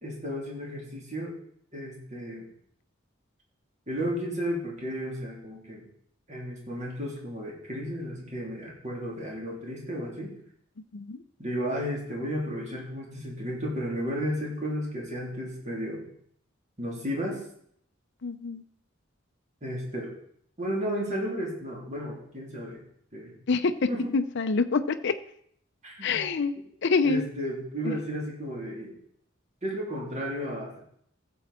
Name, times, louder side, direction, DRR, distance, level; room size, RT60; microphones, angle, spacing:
voice 1, 0.0-1.3 1.7-2.4 3.9-5.8 6.3-10.3 11.4-16.0 16.8-17.4 19.6-20.1 20.6-22.8 23.1-23.3 23.9-24.1 25.8-26.3 27.0-28.9 29.6-30.8, equal, 35° right, -3 dB, 3.3 m, -33 dB
voice 2, 18.2-18.6 23.5-23.7 24.1-25.1 26.0-26.5 26.8-27.3 27.8-28.0, left 4 dB, 60° left, 9 dB, 0.6 m, -26 dB
14.5 x 7.3 x 4.3 m, 0.67 s
head